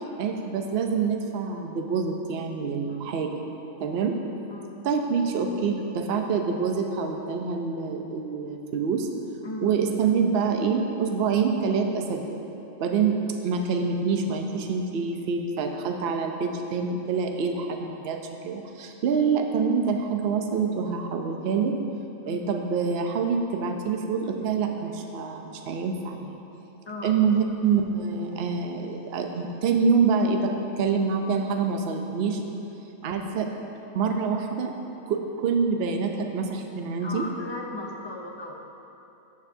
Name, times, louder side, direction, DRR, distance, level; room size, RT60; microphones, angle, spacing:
voice 1, 0.2-3.5 3.8-4.2 4.8-9.1 9.6-12.4 12.8-21.8 22.3-26.4 27.0-32.4 33.0-33.5 33.9-34.7 35.1-37.3, right 5 dB, 55° right, 4 dB, 0.8 m, -26 dB
voice 2, 26.9-27.3 33.0-33.3 37.0-38.5, left 2 dB, 35° left, -1 dB, 0.4 m, -37 dB
13.5 x 6.5 x 2.7 m, 2.9 s
omnidirectional pair, 1.5 m